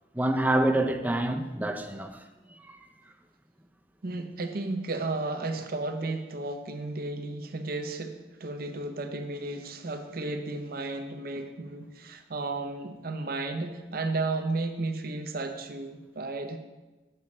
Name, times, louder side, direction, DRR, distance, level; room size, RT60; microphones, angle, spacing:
voice 1, 0.1-2.2 2.6-2.8, right 1 dB, 10° right, 6 dB, 0.4 m, -27 dB
voice 2, 4.0-16.6, right 2 dB, 60° right, 7 dB, 0.7 m, -33 dB
8.2 x 6.8 x 3.2 m, 1.1 s
head